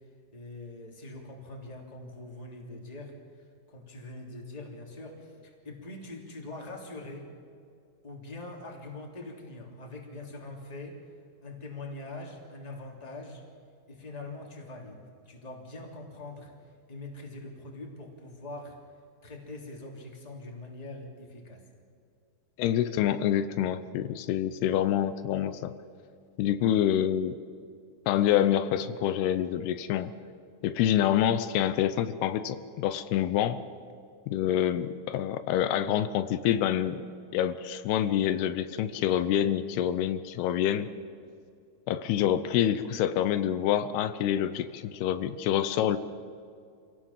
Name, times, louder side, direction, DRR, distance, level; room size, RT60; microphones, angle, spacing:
voice 1, 0.3-3.1 3.7-7.3 8.0-11.0 11.4-13.4 13.9-16.5 16.9-18.8 19.2-21.6, left 2 dB, 10° left, 0 dB, 2.6 m, -43 dB
voice 2, 22.6-25.7 26.4-27.4 28.1-30.1 30.6-33.6 34.3-37.0 37.3-40.9 41.9-46.0, left 11 dB, 85° left, 12 dB, 2.8 m, -27 dB
26.5 x 17.5 x 7.3 m, 2.4 s
omnidirectional pair, 4.5 m